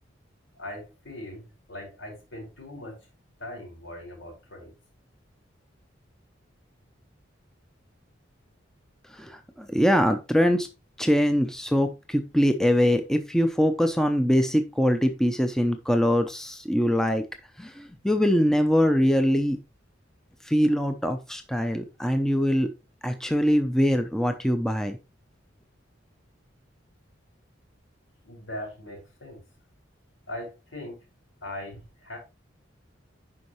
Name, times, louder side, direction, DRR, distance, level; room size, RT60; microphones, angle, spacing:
voice 1, 0.6-3.0 3.4-4.7 28.2-29.4 30.3-31.0 31.4-32.2, left 1 dB, 85° left, 5.6 m, -40 dB
voice 2, 9.2-10.7 11.0-17.3 17.6-19.6 20.4-22.7 23.0-25.0, equal, 5° left, 0.7 m, -23 dB
9.6 x 5.7 x 3.1 m
head